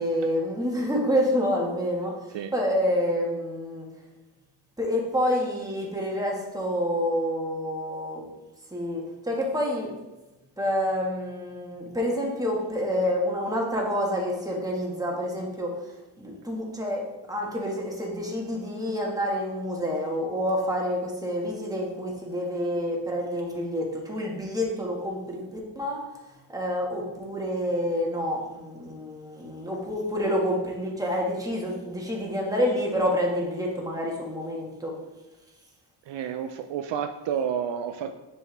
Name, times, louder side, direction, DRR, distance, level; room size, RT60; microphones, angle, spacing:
voice 1, 0.0-3.9 4.8-8.2 8.7-9.9 10.6-15.7 16.2-17.0 17.3-25.4 25.7-26.0 26.5-34.9, equal, 10° right, -2 dB, 1.5 m, -28 dB
voice 2, 36.1-38.1, right 8 dB, 70° right, 7 dB, 0.5 m, -30 dB
7.0 x 4.5 x 3.3 m, 1.1 s
cardioid pair, 85°, 46 cm